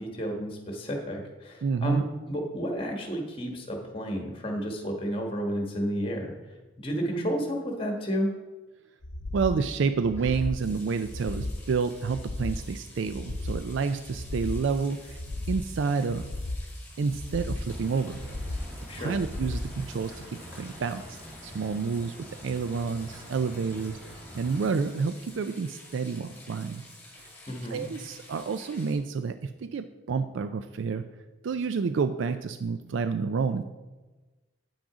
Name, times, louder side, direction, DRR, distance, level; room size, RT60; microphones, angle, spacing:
voice 1, 0.0-8.3 18.9-19.2 27.5-27.8, equal, 25° left, 2 dB, 1.4 m, -31 dB
voice 2, 1.6-2.0 9.3-15.2 15.5-16.3 17.0-18.2 19.0-22.2 22.4-24.0 24.3-26.8 27.2-27.3 27.7-31.0 31.4-33.6, right 5 dB, 65° right, 10 dB, 0.4 m, -29 dB
sound 1, 9.0-9.6 10.0-10.6 11.0-11.6 12.0-12.6 13.0-13.6 14.0-14.6 15.0-15.6 16.1-16.6 17.1-17.7 18.1-18.7 19.1-19.7 20.1-20.2, left 2 dB, 60° left, 0.7 m, -34 dB
sound 2, 10.2-28.9, left 2 dB, 10° left, 2.4 m, -51 dB
sound 3, 17.7-24.7, equal, 10° right, 1.7 m, -45 dB
8.7 x 6.1 x 4.9 m, 1.2 s
head